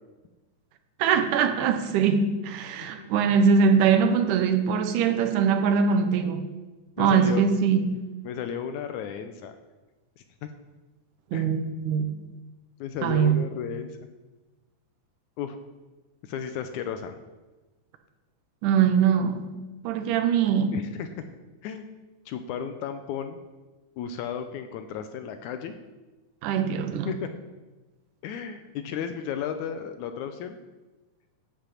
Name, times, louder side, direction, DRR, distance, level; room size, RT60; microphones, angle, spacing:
voice 1, 1.0-6.5 7.0-7.9 11.3-12.2 13.0-13.4 18.6-19.5 19.8-20.8 26.4-27.1, right 6 dB, 85° right, 7 dB, 2.3 m, -22 dB
voice 2, 2.8-3.1 7.0-7.5 8.2-9.6 10.2-10.3 11.3-11.5 12.8-14.0 15.4-15.6 16.2-17.2 20.7-21.1 21.6-21.9 22.3-23.4 24.0-25.7 27.1-27.3 28.2-30.6, left 8 dB, 80° left, 8 dB, 1.9 m, -33 dB
10.5 x 5.5 x 7.4 m, 1.2 s
omnidirectional pair, 3.6 m